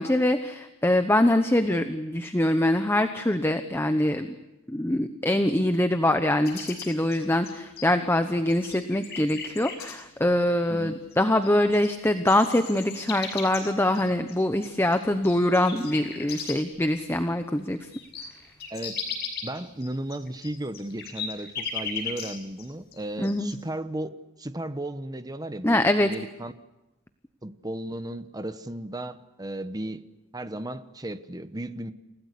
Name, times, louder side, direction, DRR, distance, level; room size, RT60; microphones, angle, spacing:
voice 1, 0.0-4.3 4.7-17.8 23.2-23.5 25.6-26.1, left 1 dB, 10° left, 8 dB, 0.9 m, -24 dB
sound 1, 6.5-8.1 8.5-9.9 11.1-11.2 11.4-16.8 17.2-17.3 17.6-22.7 22.9-23.6, left 6 dB, 50° left, 6.8 m, -37 dB
voice 2, 10.7-11.0 18.7-19.0 19.4-24.1 24.4-26.5 27.4-30.0 30.3-31.9, right 1 dB, 20° right, 10 dB, 1.1 m, -35 dB
29.0 x 17.0 x 8.4 m, 1.0 s
head